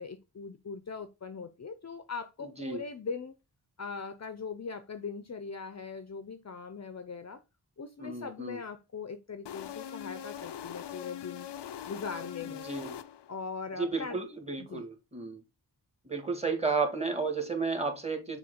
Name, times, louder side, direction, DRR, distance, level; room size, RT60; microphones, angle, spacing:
voice 1, 0.0-3.3 3.8-7.4 7.8-11.5 11.9-12.7 13.3-14.3 14.6-14.8, left 5 dB, 40° left, 0.7 m, -40 dB
voice 2, 2.4-2.8 8.0-8.6 12.5-12.9 13.8-15.4 16.1-18.4, right 4 dB, 15° right, 1.7 m, -33 dB
sound 1, 9.5-13.5, left 10 dB, 90° left, 0.6 m, -42 dB
6.9 x 3.1 x 5.1 m
wide cardioid pair, 110°, 41 cm